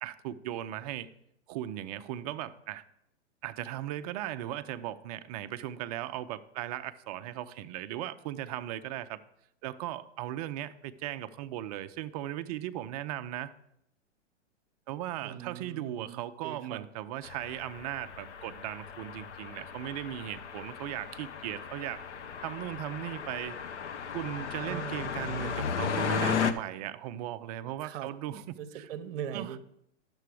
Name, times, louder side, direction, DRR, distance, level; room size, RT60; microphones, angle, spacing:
voice 1, 0.0-1.1 1.5-2.8 3.4-9.2 9.6-13.5 14.9-22.0 22.4-23.6 24.1-28.4 28.8-28.9 29.3-29.6, right 13 dB, 35° right, 11 dB, 0.5 m, -37 dB
voice 2, 15.2-16.9 24.7-25.2 27.8-29.6, right 9 dB, 50° right, 11 dB, 0.9 m, -41 dB
sound 1, 17.2-26.5, left 6 dB, 70° left, 0.9 m, -35 dB
11.5 x 6.9 x 4.8 m, 0.78 s
hypercardioid pair, 130°, 36 cm